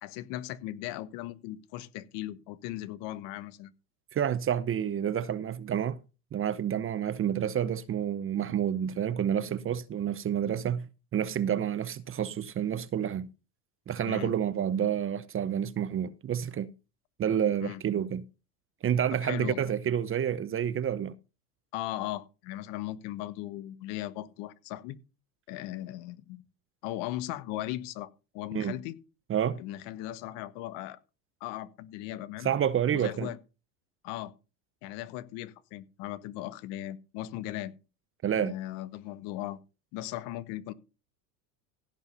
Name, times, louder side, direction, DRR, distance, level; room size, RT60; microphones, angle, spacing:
voice 1, 0.0-3.7 14.0-14.3 17.6-17.8 19.1-19.7 21.7-25.0 25.5-26.4 26.8-29.0 29.6-31.0 31.4-32.5 32.9-33.4 34.0-34.3 34.8-37.7 38.4-39.6 39.9-40.7, left 14 dB, 60° left, 1.3 m, -38 dB
voice 2, 4.1-6.0 6.3-13.3 13.9-16.7 17.2-18.2 18.8-21.1 28.5-28.8 29.3-29.6 32.4-33.3 38.2-38.6, right 9 dB, 30° right, 0.8 m, -29 dB
16.0 x 5.4 x 5.5 m
supercardioid pair, 100°, 47 cm